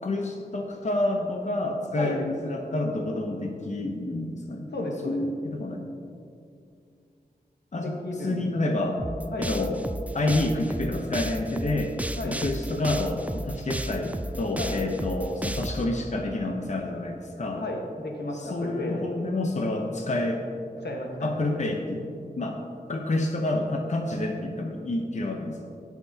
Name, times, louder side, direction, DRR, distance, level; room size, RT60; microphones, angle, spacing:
voice 1, 0.0-4.7 5.0-5.9 7.7-8.0 8.2-9.0 9.4-9.8 10.1-12.0 12.2-17.6 18.3-20.4 21.2-22.1 22.4-22.6 22.9-25.6, left 2 dB, 45° left, 2 dB, 0.8 m, -28 dB
voice 2, 4.7-5.2 7.8-8.4 9.3-9.5 12.2-12.4 14.6-14.8 17.6-19.1 20.8-21.4, left 1 dB, 85° left, 0 dB, 1.4 m, -33 dB
sound 1, 9.0-15.8, right 1 dB, 10° right, 0.4 m, -33 dB
17.0 x 5.9 x 2.8 m, 2.4 s
wide cardioid pair, 90°, 17 cm